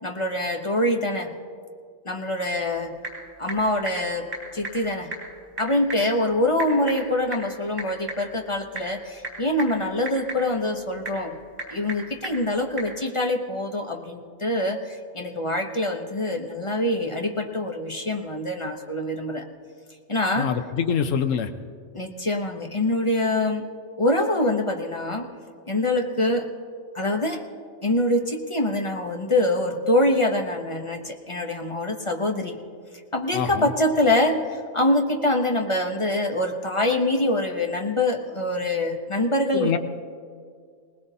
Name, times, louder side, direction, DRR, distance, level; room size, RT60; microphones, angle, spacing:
voice 1, 0.0-1.3 2.1-3.0 3.4-4.3 4.5-5.1 5.6-11.4 11.7-19.5 20.1-20.5 21.9-23.6 24.0-25.3 25.7-26.5 26.9-27.4 27.8-32.6 33.1-39.8, left 1 dB, 30° left, 3 dB, 0.7 m, -24 dB
Typing / Telephone, 2.5-13.0, right 3 dB, 30° right, 3.5 m, -39 dB
voice 2, 20.4-21.5 33.3-33.7 39.5-39.8, left 7 dB, 70° left, 9 dB, 1.1 m, -25 dB
20.5 x 19.0 x 2.7 m, 2.1 s
omnidirectional pair, 1.4 m